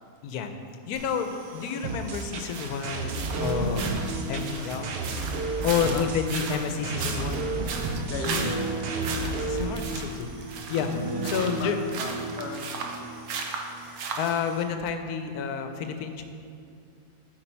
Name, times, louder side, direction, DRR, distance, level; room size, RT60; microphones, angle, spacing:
voice 1, 0.9-3.9 4.3-4.9 5.6-7.5 9.4-10.3 10.7-10.9 11.2-11.8 13.7-16.2, left 7 dB, 90° left, 7 dB, 1.1 m, -30 dB
sound 1, 0.9-14.6, right 4 dB, 75° right, 1.2 m, -37 dB
sound 2, 1.8-9.8, right 3 dB, 55° right, 0.7 m, -32 dB
sound 3, 3.3-6.0 6.8-13.7 14.1-14.4, right 1 dB, 90° right, 2.2 m, -35 dB
voice 2, 8.1-8.7 11.4-11.7 12.0-13.1, left 3 dB, 60° left, 4 dB, 0.7 m, -36 dB
8.2 x 4.7 x 4.5 m, 2.4 s
omnidirectional pair, 1.6 m